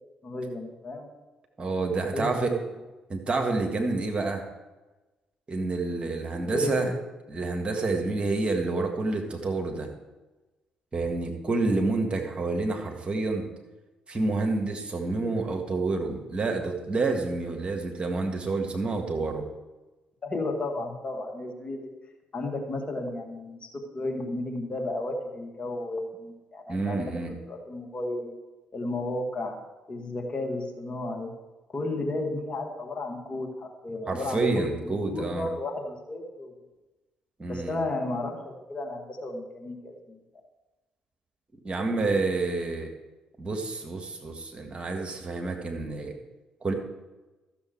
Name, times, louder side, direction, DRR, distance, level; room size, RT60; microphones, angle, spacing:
voice 1, 0.2-1.1 2.1-2.6 6.5-7.0 20.2-21.9 22.3-27.0 27.5-28.3 28.7-29.6 29.9-31.3 31.7-36.5 37.5-40.2, left 2 dB, 35° left, 2 dB, 2.1 m, -33 dB
voice 2, 1.6-2.6 3.1-4.4 5.5-6.9 7.3-9.9 10.9-13.5 14.1-19.4 26.7-27.3 34.1-35.5 37.4-37.8 41.6-42.9 43.4-46.1 46.6-46.7, right 3 dB, 30° right, 3 dB, 1.8 m, -28 dB
13.0 x 7.0 x 4.6 m, 1.1 s
hypercardioid pair, 45°, 3 cm